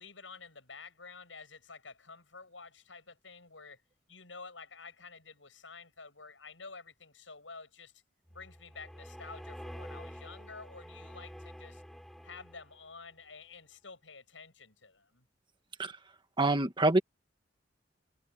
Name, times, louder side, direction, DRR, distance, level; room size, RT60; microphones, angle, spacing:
voice 1, 0.0-3.8 4.1-7.9 8.3-11.8 12.2-15.3, left 4 dB, 90° left, 7.7 m, -50 dB
sound 1, 8.3-12.9, equal, ahead, 5.8 m, -48 dB
voice 2, 16.4-17.0, right 2 dB, 25° right, 1.7 m, -25 dB
head